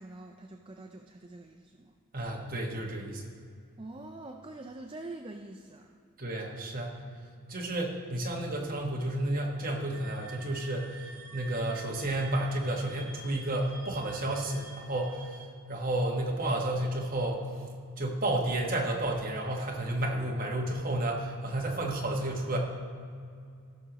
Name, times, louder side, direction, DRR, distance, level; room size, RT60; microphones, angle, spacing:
voice 1, 0.0-1.9 3.8-6.0, right 2 dB, 25° right, 3 dB, 0.4 m, -45 dB
voice 2, 2.1-3.2 6.2-7.0 7.5-15.3 15.7-22.6, right 1 dB, 40° right, -1 dB, 1.3 m, -31 dB
sound 1, 9.9-15.5, right 3 dB, 85° right, 1.3 m, -49 dB
18.0 x 6.3 x 3.0 m, 2.3 s
head